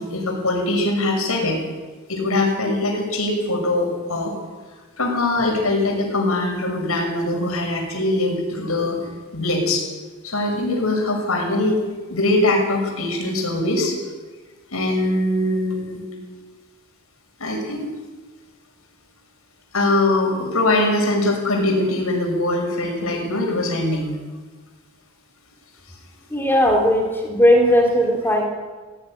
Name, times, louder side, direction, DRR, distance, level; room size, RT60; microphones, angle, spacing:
voice 1, 0.0-1.6 2.1-4.3 5.0-9.1 9.3-9.8 10.2-11.8 12.1-14.0 14.7-16.0 17.4-17.9 19.7-24.1 26.5-26.6, left 2 dB, 80° left, 1 dB, 6.4 m, -22 dB
voice 2, 26.3-28.4, equal, 10° left, 1 dB, 3.2 m, -17 dB
17.5 x 16.0 x 9.9 m, 1.3 s
head